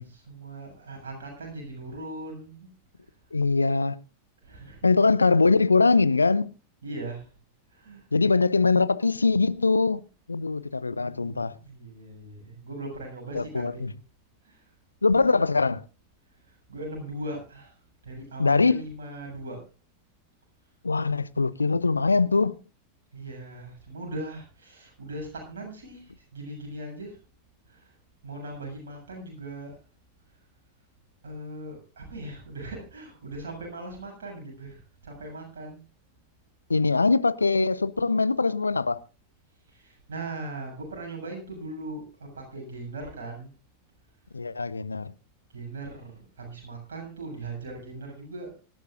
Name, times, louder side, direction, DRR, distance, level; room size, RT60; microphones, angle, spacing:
voice 1, 0.1-2.7 4.4-4.9 6.8-7.3 7.7-8.0 10.9-14.0 14.4-14.7 16.4-17.8 18.0-19.6 23.1-27.2 27.7-27.9 28.2-29.8 31.2-35.8 39.7-43.5 45.5-48.5, right 2 dB, 65° right, 7.3 m, -39 dB
voice 2, 3.3-4.0 4.8-6.5 8.1-10.0 10.3-11.6 13.3-13.9 15.0-15.8 18.4-18.8 20.8-22.5 36.7-39.0 44.3-45.1, left 4 dB, 80° left, 0.5 m, -22 dB
25.0 x 11.5 x 2.5 m
figure-of-eight pair, 90°, 0 cm